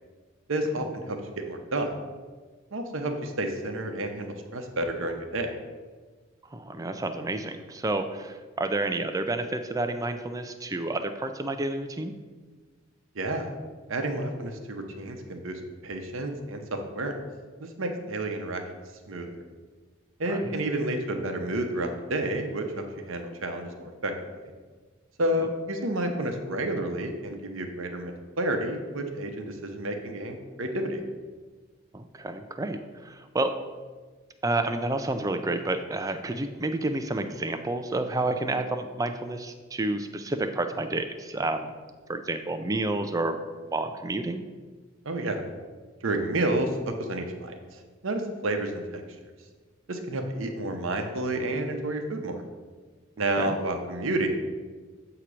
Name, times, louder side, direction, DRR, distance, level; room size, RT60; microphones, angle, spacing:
voice 1, 0.5-1.2 1.4-1.9 2.7-5.5 13.1-13.5 13.9-17.1 17.6-18.6 19.1-19.3 20.2-24.1 25.2-31.0 45.0-45.4 46.0-47.5 48.0-49.0 49.9-52.4 53.2-54.3, right 1 dB, 70° right, 4 dB, 0.8 m, -30 dB
voice 2, 6.5-12.1 20.3-20.5 25.3-25.5 31.9-33.6 34.4-41.7 42.1-43.4 43.7-44.4 53.4-53.5, right 2 dB, 15° right, 8 dB, 0.4 m, -30 dB
8.1 x 2.9 x 6.0 m, 1.4 s
head